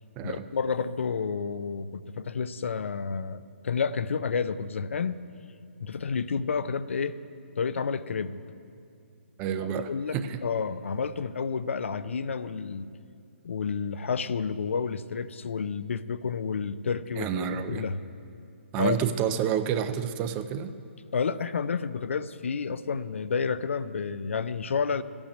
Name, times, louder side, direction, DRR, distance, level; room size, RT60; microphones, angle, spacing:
voice 1, 0.2-5.3 5.8-7.2 7.6-8.4 9.9-10.2 10.4-12.9 13.4-18.0 18.8-19.0 21.1-25.0, left 5 dB, 70° left, 14 dB, 0.6 m, -30 dB
voice 2, 9.4-10.4 17.2-17.9 18.7-20.7, right 8 dB, 15° right, 11 dB, 0.4 m, -29 dB
13.5 x 8.8 x 8.8 m, 2.5 s
hypercardioid pair, 160°, 7 cm